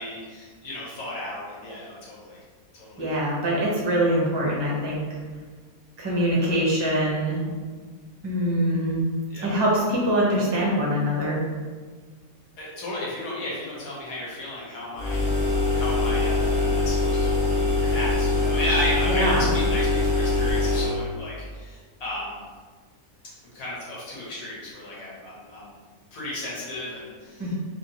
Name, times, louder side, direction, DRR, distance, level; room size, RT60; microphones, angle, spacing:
voice 1, 0.0-2.4 2.7-3.1 9.3-9.6 12.6-22.5 23.5-25.7 26.1-27.5, left 1 dB, 70° left, -6 dB, 1.5 m, -34 dB
voice 2, 3.0-5.0 6.0-7.4 8.2-9.0 9.4-11.4 19.1-19.5 27.4-27.5, equal, 25° right, -5 dB, 0.6 m, -23 dB
sound 1, 15.0-21.0, left 3 dB, 40° left, 0.8 m, -23 dB
3.0 x 3.0 x 2.7 m, 1.5 s
omnidirectional pair, 1.6 m